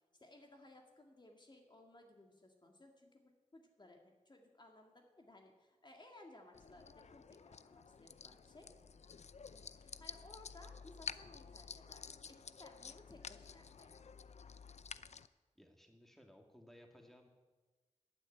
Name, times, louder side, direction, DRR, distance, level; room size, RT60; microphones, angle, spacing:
voice 1, 0.1-8.7 9.8-14.1, left 2 dB, 35° left, 2 dB, 1.9 m, -60 dB
sound 1, 6.5-15.3, left 6 dB, 60° left, 0.5 m, -51 dB
voice 2, 15.6-17.3, equal, ahead, 2 dB, 2.2 m, -61 dB
12.0 x 10.0 x 9.1 m, 1.3 s
wide cardioid pair, 90°, 13 cm